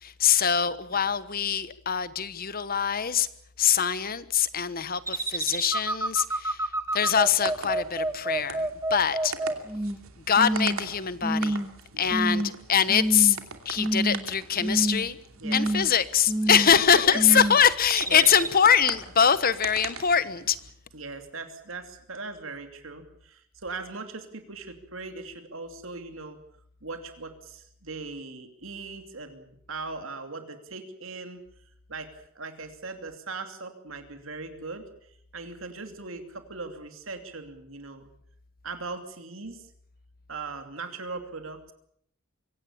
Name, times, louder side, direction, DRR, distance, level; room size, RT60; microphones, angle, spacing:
voice 1, 0.0-3.3 3.6-9.3 10.2-11.6 12.0-13.4 13.6-15.2 15.5-20.6, left 8 dB, 45° left, 15 dB, 1.2 m, -23 dB
sound 1, 5.1-10.0 10.4-10.8 11.2-11.7 12.1-12.5 12.9-13.4 13.8-14.3 14.6-15.1 15.4-15.9 16.3-16.8 17.1-17.6 18.0-18.5, right 1 dB, 15° right, 1.3 m, -28 dB
sound 2, 7.1-20.7, right 5 dB, 85° right, 2.7 m, -42 dB
voice 2, 11.9-12.4 15.4-15.7 16.5-17.4 18.1-18.5 20.9-26.4 26.8-31.4 31.9-38.0 38.6-39.7 40.3-41.7, right 3 dB, 70° right, 7 dB, 2.8 m, -39 dB
24.0 x 17.0 x 8.7 m, 0.69 s
head